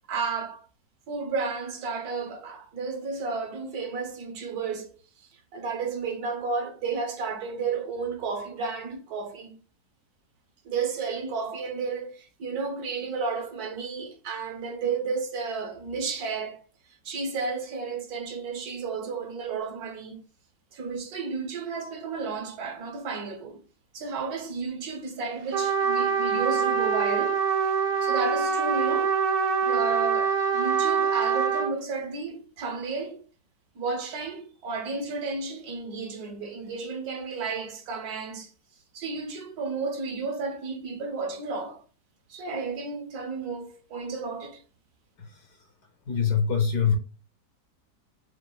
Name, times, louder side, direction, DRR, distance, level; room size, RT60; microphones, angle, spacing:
voice 1, 0.1-0.7 1.1-9.6 10.6-16.6 17.0-20.2 20.7-23.6 23.9-27.4 28.0-29.2 29.6-33.2 33.7-38.5 38.9-41.8 42.3-44.6, right 4 dB, 65° right, 1.4 m, -32 dB
Trumpet, 25.5-31.7, right 6 dB, 90° right, 1.4 m, -24 dB
voice 2, 46.1-47.0, left 6 dB, 70° left, 1.2 m, -24 dB
6.6 x 2.4 x 2.3 m
omnidirectional pair, 1.8 m